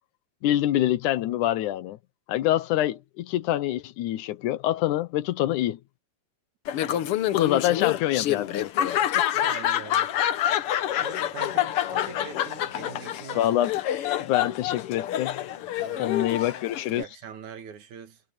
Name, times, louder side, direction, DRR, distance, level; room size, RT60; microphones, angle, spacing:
voice 1, 0.4-2.0 2.3-5.8 7.3-9.0 13.3-13.7 14.2-15.4 16.0-17.0, left 13 dB, 90° left, 2.4 m, -25 dB
Laughter, 6.7-17.0, left 11 dB, 65° left, 1.6 m, -27 dB
voice 2, 6.8-7.1 8.9-10.1 11.0-13.5 15.8-16.5 16.9-18.2, right 8 dB, 75° right, 3.4 m, -43 dB
omnidirectional pair, 3.4 m